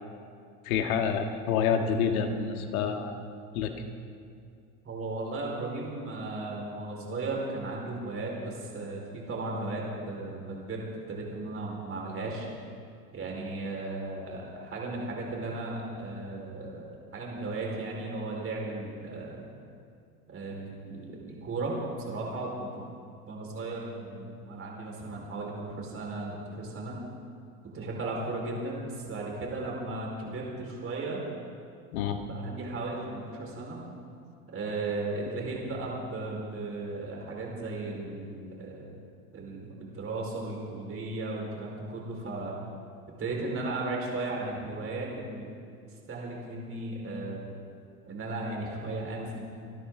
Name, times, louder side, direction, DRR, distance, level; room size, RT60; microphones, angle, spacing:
voice 1, 0.7-3.1 3.5-3.8 31.9-32.2, left 7 dB, 70° left, 6 dB, 1.7 m, -28 dB
voice 2, 4.8-12.5 13.1-19.5 20.3-21.8 22.1-22.9 23.3-27.0 27.7-31.2 32.2-33.8 34.5-38.9 39.3-42.6 43.2-45.5 46.1-47.5 48.1-49.4, right 2 dB, 30° right, -2 dB, 4.6 m, -35 dB
27.0 x 12.5 x 3.8 m, 2.4 s
hypercardioid pair, 90°, 44 cm